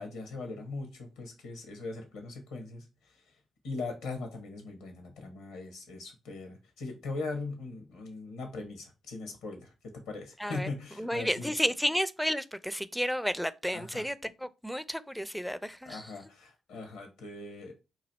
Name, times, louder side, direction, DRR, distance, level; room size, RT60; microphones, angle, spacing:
voice 1, 0.0-2.8 3.6-11.5 13.7-14.1 15.8-17.7, left 3 dB, 85° left, 1.2 m, -40 dB
voice 2, 11.0-16.1, equal, ahead, 0.4 m, -32 dB
3.1 x 2.6 x 4.0 m
supercardioid pair, 50°, 0 cm